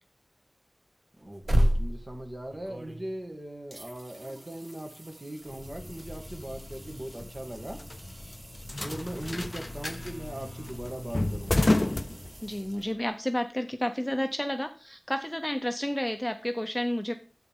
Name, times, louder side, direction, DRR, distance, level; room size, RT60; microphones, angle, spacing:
voice 1, 1.2-7.8 8.8-11.7, right 1 dB, 40° right, 3 dB, 2.0 m, -39 dB
sound 1, 1.2-3.3 3.7-13.3 16.1-16.2, equal, 65° right, 1.4 m, -35 dB
sound 2, 5.5-12.8, left 2 dB, 40° left, 0.4 m, -32 dB
voice 2, 12.4-17.1, left 1 dB, 10° left, 6 dB, 0.7 m, -31 dB
9.9 x 8.1 x 3.7 m, 0.37 s
wide cardioid pair, 60°, 0 cm